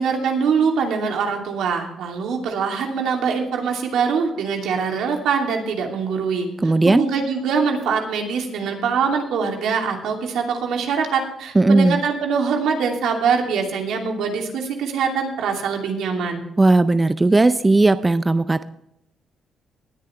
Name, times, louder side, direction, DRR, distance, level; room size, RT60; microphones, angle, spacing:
voice 1, 0.0-6.5 6.9-16.4, right 5 dB, 80° right, 2 dB, 2.7 m, -23 dB
voice 2, 6.6-7.1 11.5-12.0 16.6-18.6, right 2 dB, 20° right, 12 dB, 0.5 m, -16 dB
19.5 x 9.7 x 3.3 m, 0.81 s
cardioid pair, 90°, 0 cm